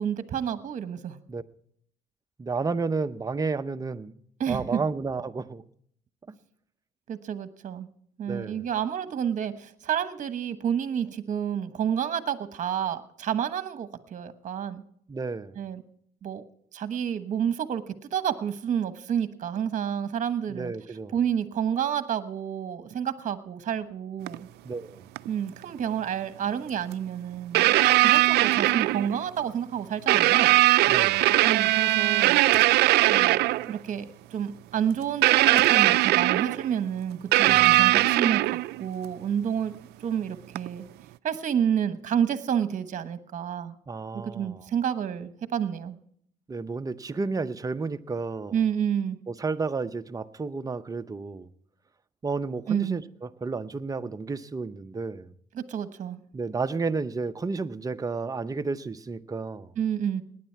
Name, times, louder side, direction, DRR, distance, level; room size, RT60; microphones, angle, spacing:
voice 1, 0.0-1.2 4.4-4.8 7.1-7.9 8.2-14.8 15.5-15.8 16.2-16.4 16.7-20.7 21.1-24.5 25.3-30.6 31.4-32.4 33.1-34.1 34.3-39.7 40.0-40.9 41.2-43.7 44.1-46.0 48.5-49.2 52.7-53.0 55.5-56.2 59.8-60.2, right 8 dB, 45° right, 1.2 m, -29 dB
voice 2, 2.4-4.1 4.5-5.6 6.3-6.4 8.3-8.7 15.1-15.6 20.5-21.1 24.6-25.1 30.9-31.3 37.5-38.0 43.9-44.6 46.5-48.6 49.3-51.5 52.2-55.3 56.3-59.7, right 4 dB, 20° right, 0.7 m, -32 dB
sound 1, 24.3-24.4 25.2-25.3 26.9-27.0 27.5-29.2 30.1-33.7 35.2-36.7 37.3-38.8 40.6-40.7, right 18 dB, 75° right, 0.4 m, -20 dB
18.0 x 10.0 x 4.6 m
cardioid pair, 110°, 17 cm